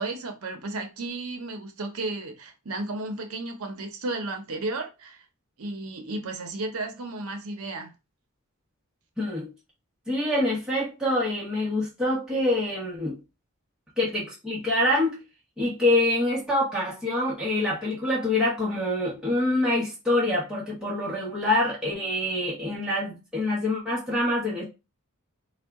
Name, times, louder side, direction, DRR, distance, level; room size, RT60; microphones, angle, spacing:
voice 1, 0.0-5.2 5.6-7.9, right 2 dB, 75° right, 0.8 m, -33 dB
voice 2, 9.2-9.5 10.1-13.2 14.0-15.2 15.6-24.6, left 1 dB, 5° right, 1.1 m, -25 dB
4.5 x 2.3 x 3.5 m
head